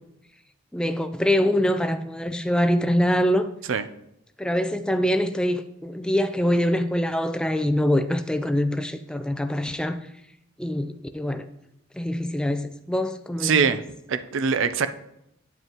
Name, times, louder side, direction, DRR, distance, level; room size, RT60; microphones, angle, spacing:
voice 1, 0.7-3.5 4.4-10.0 10.6-11.5 11.9-13.8, equal, 5° left, 0.4 m, -24 dB
voice 2, 13.4-13.8 14.1-14.9, right 6 dB, 65° right, 0.5 m, -22 dB
9.3 x 7.9 x 3.0 m
head